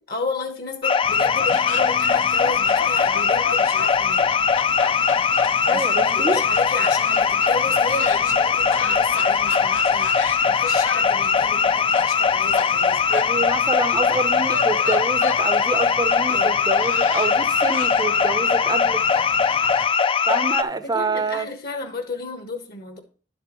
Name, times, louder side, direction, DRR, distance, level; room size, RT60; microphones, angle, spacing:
voice 1, 0.1-4.3 5.7-13.0 16.3-16.6 19.1-19.4 20.8-23.0, left 3 dB, 55° left, 1.3 m, -33 dB
sound 1, 0.8-20.6, left 6 dB, 30° left, 0.3 m, -20 dB
sound 2, 1.0-19.9, left 5 dB, 80° left, 0.8 m, -35 dB
voice 2, 5.6-6.4 13.1-19.0 20.3-21.5, right 3 dB, 20° right, 0.6 m, -27 dB
11.0 x 6.8 x 3.0 m
head